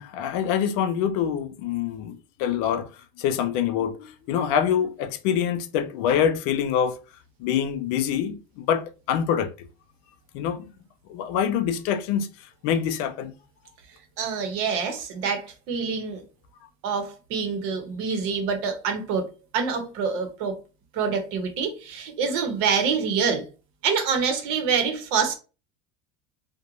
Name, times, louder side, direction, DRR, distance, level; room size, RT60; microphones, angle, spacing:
voice 1, 0.0-2.9 3.2-7.0 7.4-9.7 10.3-10.7 11.1-12.3 12.6-13.3, left 8 dB, 60° left, 0.4 m, -25 dB
voice 2, 14.2-16.2 16.8-19.3 19.5-20.6 20.9-23.5 23.8-25.4, right 5 dB, 60° right, 0.8 m, -26 dB
2.5 x 2.1 x 2.9 m
supercardioid pair, 155°, 14 cm